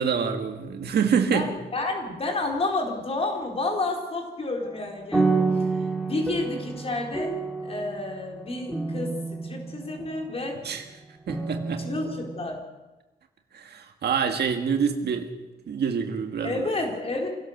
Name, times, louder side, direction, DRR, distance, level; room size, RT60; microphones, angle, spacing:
voice 1, 0.0-1.5 10.6-10.9 11.3-11.9 13.5-15.3 15.7-16.6, right 6 dB, 75° right, 5 dB, 1.9 m, -26 dB
voice 2, 1.3-5.4 6.0-7.4 7.6-10.6 11.8-12.6 16.4-17.3, left 2 dB, 35° left, 1 dB, 4.2 m, -30 dB
sound 1, 4.6-10.6 11.3-12.4, right 3 dB, ahead, 3.4 m, -29 dB
26.5 x 17.5 x 6.7 m, 1.1 s
wide cardioid pair, 180°, 17 cm